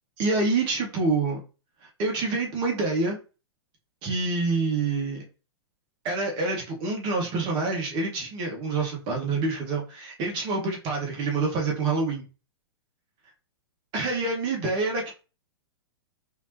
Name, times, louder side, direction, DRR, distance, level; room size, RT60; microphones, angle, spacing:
voice 1, 0.2-1.4 1.8-3.2 4.0-5.2 6.0-12.2 13.9-15.1, right 3 dB, 35° right, 0 dB, 1.9 m, -27 dB
5.6 x 3.1 x 2.9 m, 0.33 s
figure-of-eight pair, 110°, 14 cm